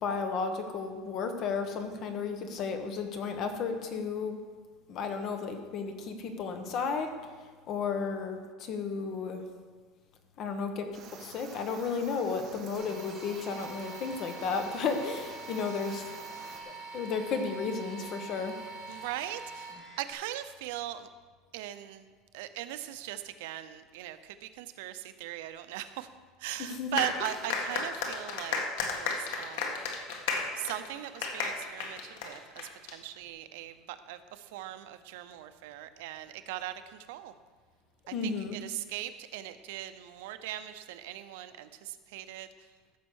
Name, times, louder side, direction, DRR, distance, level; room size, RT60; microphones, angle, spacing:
voice 1, 0.0-4.4 4.9-7.1 7.7-9.4 10.4-16.0 16.9-18.5 26.6-27.0 38.1-38.6, left 5 dB, 35° left, 6 dB, 1.2 m, -33 dB
sound 1, 10.9-16.6, right 6 dB, 30° right, 1.5 m, -50 dB
sound 2, 12.7-20.1, right 4 dB, 10° left, 3.8 m, -44 dB
voice 2, 18.9-21.1 21.5-22.0 22.3-26.1 26.4-29.8 30.6-37.3 38.1-42.5, right 13 dB, 80° right, 11 dB, 0.7 m, -39 dB
sound 3, 27.0-32.9, left 5 dB, 80° left, 1.8 m, -33 dB
14.5 x 6.2 x 6.4 m, 1.5 s
cardioid pair, 170°, 0 cm